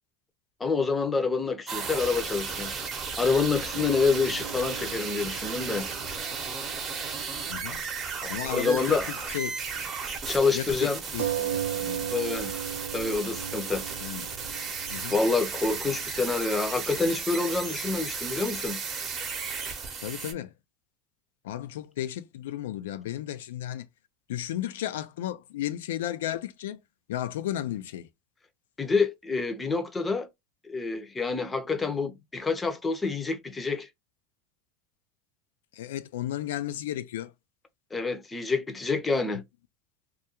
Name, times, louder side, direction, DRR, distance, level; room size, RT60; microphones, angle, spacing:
voice 1, 0.6-2.8 3.2-5.9 8.2-9.1 10.3-11.0 11.7-11.8 12.1-12.7 12.9-13.8 15.1-18.8 28.8-30.3 30.6-33.9 37.9-39.4, left 4 dB, 15° left, 0.5 m, -27 dB
sound 1, 1.7-20.3, right 5 dB, 25° right, 0.7 m, -35 dB
sound 2, 3.7-7.6 7.9-8.0 11.2-16.4, right 10 dB, 85° right, 0.4 m, -37 dB
voice 2, 7.5-7.8 8.3-9.5 10.5-12.1 14.0-14.3 14.9-15.2 20.0-20.5 21.4-23.9 24.3-26.8 27.1-28.1 35.7-37.3, left 12 dB, 85° left, 0.3 m, -34 dB
2.4 x 2.1 x 2.8 m
supercardioid pair, 130°, 0 cm